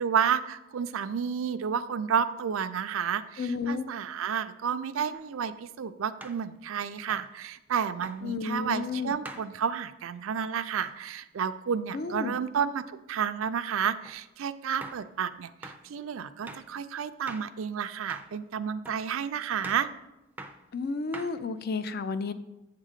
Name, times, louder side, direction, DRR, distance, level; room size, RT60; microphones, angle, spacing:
voice 1, 0.0-19.9, right 7 dB, 70° right, 12 dB, 0.4 m, -31 dB
voice 2, 3.4-3.9 8.2-9.2 11.9-12.4 20.7-22.3, left 4 dB, 50° left, 12 dB, 0.4 m, -32 dB
sound 1, 5.1-5.3 6.2-6.4 7.1-7.3 8.0-8.2 9.2-9.5 10.8-11.0 14.0-14.2 14.8-15.1 15.6-15.8 16.5-16.7 17.3-17.5 18.1-18.4 18.8-19.1 19.6-19.9 20.4-20.6 21.1-21.6, right 2 dB, 10° right, 0.4 m, -43 dB
8.0 x 3.7 x 6.5 m, 0.96 s
head